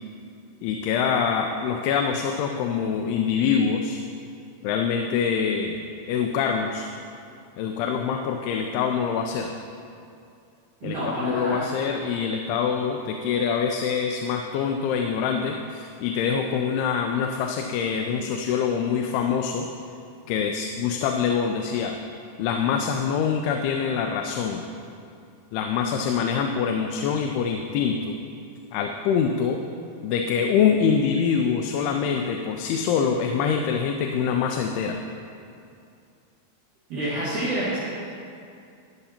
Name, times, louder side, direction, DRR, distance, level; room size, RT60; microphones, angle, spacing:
voice 1, 0.6-4.0 4.6-5.8 6.1-6.9 7.6-9.5 10.8-19.7 20.3-22.0 22.4-24.6 25.5-28.2 28.7-29.6 30.0-35.0, left 6 dB, 85° left, 3 dB, 2.5 m, -25 dB
voice 2, 10.8-11.7 36.9-37.8, right 1 dB, 55° right, -11 dB, 3.1 m, -28 dB
19.0 x 6.6 x 2.9 m, 2.5 s
omnidirectional pair, 4.6 m